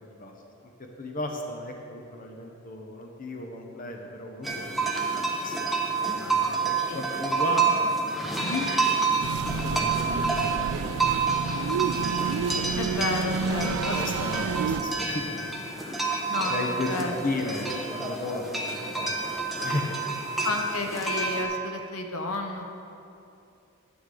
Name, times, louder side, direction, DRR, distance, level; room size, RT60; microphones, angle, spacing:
voice 1, 0.0-0.3 1.0-8.7 9.6-11.6 12.4-12.7 13.4-15.7 16.5-20.0, left 2 dB, 40° left, 2 dB, 0.8 m, -36 dB
sound 1, 4.4-21.4, right 4 dB, ahead, 0.9 m, -28 dB
sound 2, 9.2-14.8, right 5 dB, 85° right, 0.4 m, -30 dB
voice 2, 12.8-14.0 16.3-17.1 20.4-22.8, left 3 dB, 80° left, 3 dB, 0.9 m, -31 dB
9.9 x 9.7 x 3.8 m, 2.7 s
head